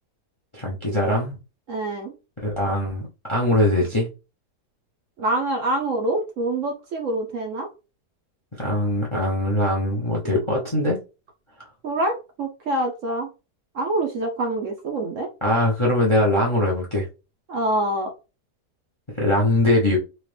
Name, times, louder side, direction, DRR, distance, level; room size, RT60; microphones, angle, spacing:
voice 1, 0.5-1.4 2.4-4.1 8.6-11.0 15.4-17.0 19.2-20.0, left 1 dB, 25° left, 0.7 m, -21 dB
voice 2, 1.7-2.1 5.2-7.7 11.8-13.3 13.7-15.3 17.5-18.1, right 1 dB, 60° right, 1.0 m, -25 dB
4.1 x 2.4 x 3.3 m
omnidirectional pair, 1.7 m